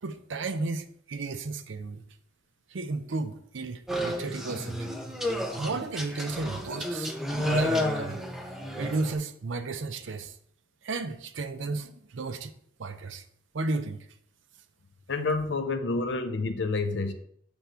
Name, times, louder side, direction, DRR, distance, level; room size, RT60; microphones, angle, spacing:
voice 1, 0.0-2.0 2.7-4.9 5.6-8.2 8.8-10.4 10.8-12.5 12.8-13.2 13.5-14.1, right 3 dB, 75° right, 0.6 m, -33 dB
sound 1, 3.9-9.1, left 1 dB, ahead, 0.5 m, -31 dB
voice 2, 15.1-17.1, left 3 dB, 65° left, 0.7 m, -28 dB
6.3 x 3.4 x 5.6 m
head